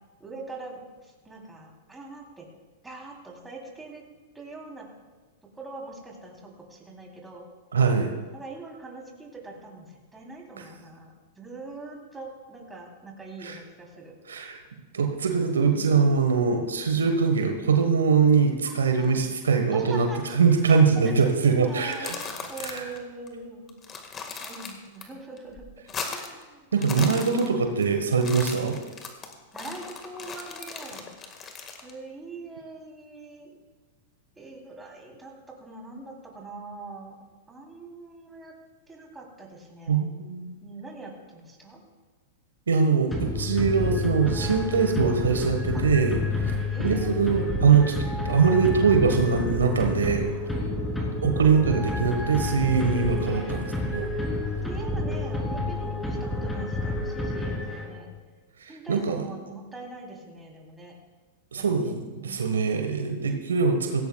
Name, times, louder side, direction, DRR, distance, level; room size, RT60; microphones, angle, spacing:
voice 1, 0.2-2.5 2.8-4.0 4.3-4.9 5.6-7.5 8.3-14.2 15.6-16.2 19.0-19.2 19.7-20.2 21.0-21.1 21.6-23.7 24.4-25.7 26.1-26.7 29.5-31.1 31.8-33.5 34.4-37.2 37.5-38.5 38.9-40.0 40.6-41.8 43.4-43.6 45.7-45.8 46.7-47.5 50.5-50.9 53.5-53.6 54.6-58.1 58.7-60.9 61.6-62.6, right 3 dB, 10° right, -1 dB, 3.5 m, -43 dB
voice 2, 7.7-8.1 13.4-13.6 14.3-14.6 14.9-22.1 22.6-22.9 26.7-28.8 39.9-40.5 42.7-46.2 46.8-50.3 51.2-54.1 58.6-59.2 61.5-64.1, right 5 dB, 85° right, 4 dB, 1.4 m, -22 dB
sound 1, 21.8-23.0 23.3-23.4 23.7-25.0 25.4-26.4 26.7-27.8 28.1-31.9, left 5 dB, 25° left, 1.8 m, -37 dB
sound 2, 43.1-58.2, left 2 dB, 10° left, 3.1 m, -29 dB
17.0 x 16.5 x 2.4 m, 1.3 s
hypercardioid pair, 110°, 0 cm